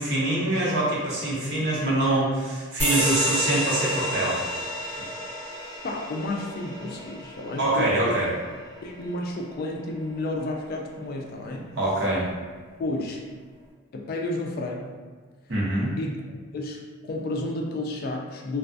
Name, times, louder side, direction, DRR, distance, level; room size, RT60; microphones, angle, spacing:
voice 1, 0.0-4.4 7.6-8.3 11.7-12.3 15.5-15.9, right 1 dB, 55° right, -6 dB, 0.7 m, -24 dB
voice 2, 1.3-1.6 5.8-8.4 8.8-11.7 12.8-13.2 13.9-15.0 16.0-16.2 16.5-18.6, left 2 dB, 45° left, 1 dB, 0.3 m, -31 dB
sound 1, 2.8-9.9, equal, 10° right, 0.9 m, -31 dB
2.3 x 2.3 x 2.5 m, 1.4 s
head